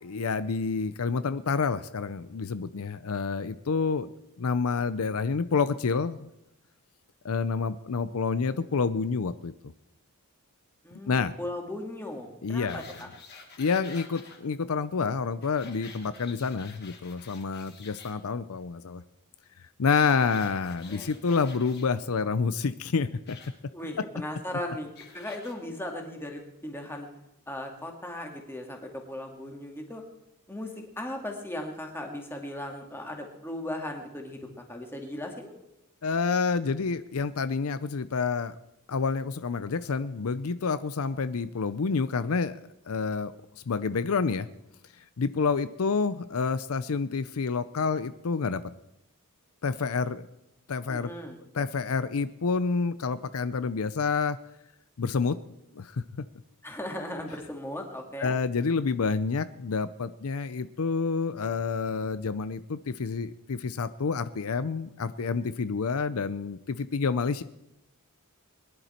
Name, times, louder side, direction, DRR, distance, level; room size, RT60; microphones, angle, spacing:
voice 1, 0.0-4.1 4.4-6.3 7.2-9.5 11.1-11.3 12.4-12.8 13.6-19.0 19.8-23.4 36.0-38.5 38.9-42.6 42.9-43.3 43.7-44.5 45.2-48.6 49.6-50.3 50.7-51.1 51.5-54.4 55.0-55.4 55.8-56.0 58.2-67.4, left 5 dB, 70° left, 13 dB, 0.6 m, -28 dB
voice 2, 10.8-13.1 20.9-21.1 23.7-24.9 25.1-27.1 27.5-30.0 30.5-30.7 31.0-35.5 50.9-51.4 56.6-58.4, left 1 dB, 10° left, 2 dB, 2.2 m, -37 dB
sound 1, 12.7-14.4 15.4-18.1 19.9-21.9 23.3-23.5 25.0-25.5 26.2-26.3, left 5 dB, 50° left, 2.5 m, -49 dB
21.5 x 11.0 x 4.4 m, 0.87 s
head